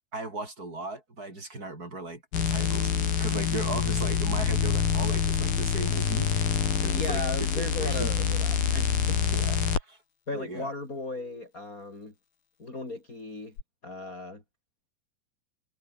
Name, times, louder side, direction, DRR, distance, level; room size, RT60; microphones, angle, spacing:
voice 1, 0.1-6.5 6.8-8.1 9.3-10.0 10.3-10.7, right 2 dB, 25° right, 6.4 m, -37 dB
sound 1, 2.3-9.8 13.6-13.7, left 7 dB, 75° left, 5.4 m, -26 dB
voice 2, 6.9-9.2 10.3-12.1 12.6-13.5 13.8-14.4, left 2 dB, 20° left, 5.8 m, -36 dB
omnidirectional pair, 4.1 m